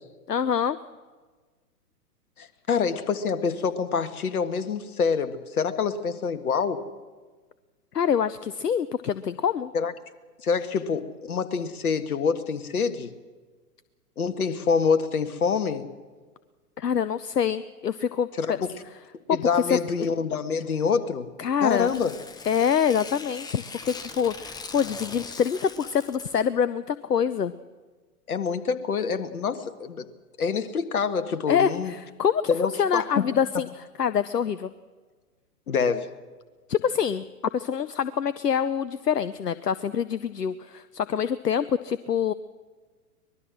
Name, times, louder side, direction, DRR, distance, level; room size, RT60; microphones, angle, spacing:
voice 1, 0.3-0.8 7.9-9.7 16.8-18.6 19.3-19.4 19.7-20.1 21.4-21.9 22.5-27.5 31.5-33.7 34.0-34.7 36.7-37.2 37.5-42.3, left 7 dB, 80° left, 15 dB, 0.8 m, -25 dB
voice 2, 2.4-6.8 9.7-9.9 10.4-13.1 14.2-15.9 18.4-18.7 19.3-21.3 21.6-22.1 28.3-30.1 30.4-31.9 32.5-33.3 35.7-36.1, left 5 dB, 65° left, 10 dB, 1.8 m, -26 dB
Tearing, 21.6-26.5, left 4 dB, 10° left, 1.0 m, -41 dB
24.5 x 20.5 x 6.3 m, 1.4 s
figure-of-eight pair, 110°, 47 cm